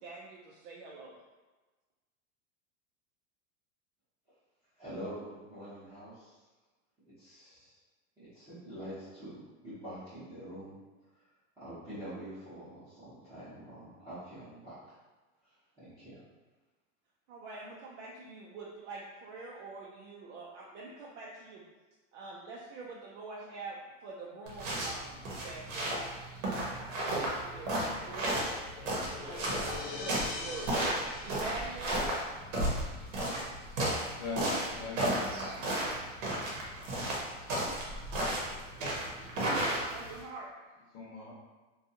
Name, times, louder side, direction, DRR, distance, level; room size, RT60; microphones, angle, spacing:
voice 1, 0.0-1.2 17.3-21.6 22.1-25.9 26.5-28.5 28.9-32.2 39.7-40.5, right 3 dB, 65° right, -4 dB, 0.5 m, -45 dB
voice 2, 4.8-6.5 7.1-7.8 8.2-10.7 11.6-14.8 15.4-16.2, right 1 dB, 10° right, -18 dB, 0.7 m, -45 dB
sound 1, 24.5-40.2, right 1 dB, 85° right, 1.0 m, -33 dB
sound 2, 27.5-32.6, left 4 dB, 80° left, 0.8 m, -45 dB
voice 3, 34.2-35.7 40.9-41.3, left 4 dB, 40° left, -5 dB, 0.7 m, -42 dB
2.6 x 2.3 x 2.6 m, 1.2 s
supercardioid pair, 175°, 38 cm